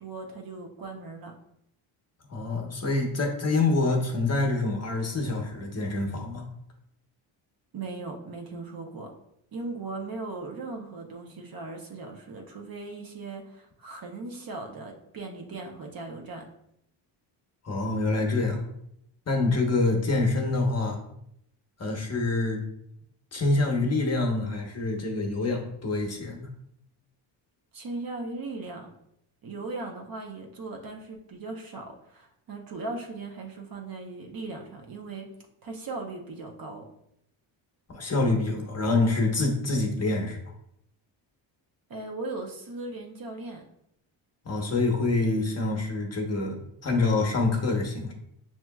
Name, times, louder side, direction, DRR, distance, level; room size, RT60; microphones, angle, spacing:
voice 1, 0.0-1.3 7.7-9.1 9.5-16.5 27.7-28.9 29.4-35.3 35.6-36.9 41.9-43.6, right 3 dB, 45° right, 2 dB, 0.9 m, -38 dB
voice 2, 2.3-6.4 17.6-18.6 19.3-21.0 21.8-22.6 23.3-26.5 37.9-40.4 44.4-48.1, left 2 dB, 30° left, 1 dB, 1.0 m, -26 dB
6.0 x 2.9 x 2.3 m, 0.75 s
cardioid pair, 80°, 49 cm